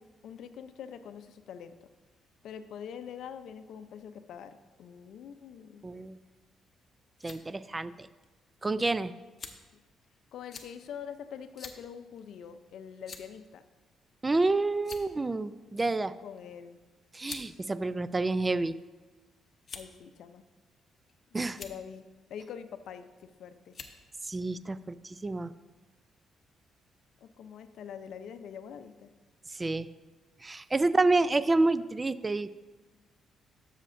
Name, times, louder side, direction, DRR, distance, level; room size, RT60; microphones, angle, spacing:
voice 1, 0.0-1.9 2.4-5.8 9.7-9.8 10.3-13.6 16.2-16.8 19.7-20.4 21.5-22.0 22.3-23.7 27.2-29.1, left 8 dB, 75° left, 10 dB, 0.5 m, -44 dB
voice 2, 5.8-6.2 7.2-8.1 8.6-9.1 14.2-16.1 17.1-18.8 21.3-21.6 24.2-25.5 29.5-29.9 30.4-32.6, right 2 dB, 20° right, 15 dB, 0.3 m, -28 dB
sound 1, 7.1-7.4 8.2-8.3 9.4-9.7 10.5-10.7 11.6-11.8 12.2-12.3 13.0-13.4 14.3-14.5 14.8-15.3 16.4-16.5 17.2-17.5 18.3-18.9 19.6-20.0 20.8-21.1 21.5-21.8 23.0-23.3 23.7-24.0, left 5 dB, 45° left, 0.8 m, -45 dB
12.5 x 6.5 x 2.6 m, 1.2 s
cardioid pair, 90°, 0 cm